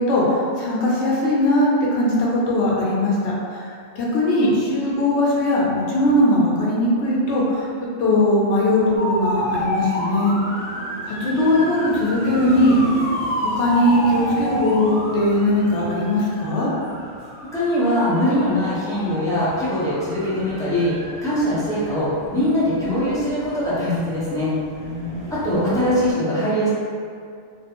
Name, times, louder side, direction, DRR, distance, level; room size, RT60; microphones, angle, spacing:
voice 1, 0.0-3.7 4.0-7.7 8.0-10.4 11.0-12.8 13.6-16.7 24.8-25.3, left 1 dB, 70° left, -5 dB, 0.9 m, -20 dB
sound 1, 9.0-26.1, equal, 40° right, 0.6 m, -30 dB
voice 2, 17.4-20.9 21.2-24.5 25.3-26.7, equal, 5° left, -12 dB, 0.5 m, -22 dB
2.3 x 2.1 x 2.8 m, 2.3 s
omnidirectional pair, 1.2 m